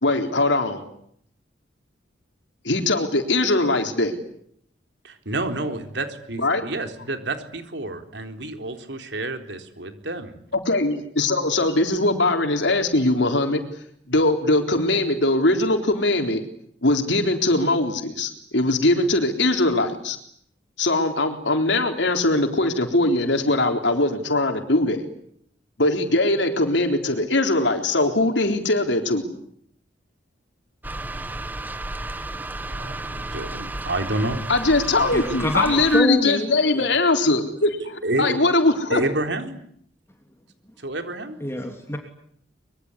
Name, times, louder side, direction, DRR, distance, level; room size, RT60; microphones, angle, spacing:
voice 1, 0.0-0.8 2.6-4.2 6.4-6.7 10.5-13.6 14.1-16.4 16.8-20.2 20.8-25.1 25.8-29.3 34.5-39.0, left 2 dB, 80° left, 5 dB, 3.9 m, -21 dB
voice 2, 5.0-10.4 32.5-34.4 38.0-38.4 38.9-39.6 40.8-41.4, right 2 dB, 70° right, 6 dB, 3.9 m, -29 dB
sound 1, 30.8-36.0, right 2 dB, 10° right, 1.3 m, -32 dB
voice 3, 35.1-36.9 41.4-42.0, left 1 dB, 15° left, 4 dB, 3.1 m, -27 dB
24.5 x 23.5 x 9.9 m, 0.69 s
head